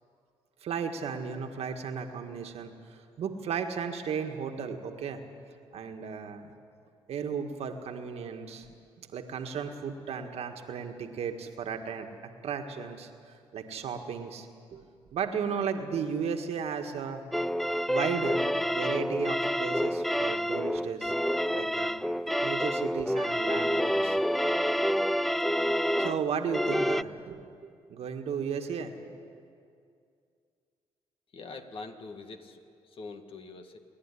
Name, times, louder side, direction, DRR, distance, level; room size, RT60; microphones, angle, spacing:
voice 1, 0.6-2.7 3.2-5.2 5.7-6.5 7.1-8.7 9.0-12.1 12.4-13.1 13.5-14.8 15.1-17.3 17.9-18.4 18.7-21.1 21.5-21.9 22.4-24.2 26.0-27.4 27.9-28.9, right 6 dB, 70° right, 5 dB, 1.8 m, -34 dB
sound 1, 17.3-27.0, equal, ahead, 0.5 m, -28 dB
voice 2, 31.3-33.8, left 3 dB, 55° left, 6 dB, 2.1 m, -44 dB
28.0 x 11.0 x 10.0 m, 2.3 s
cardioid pair, 70°, 11 cm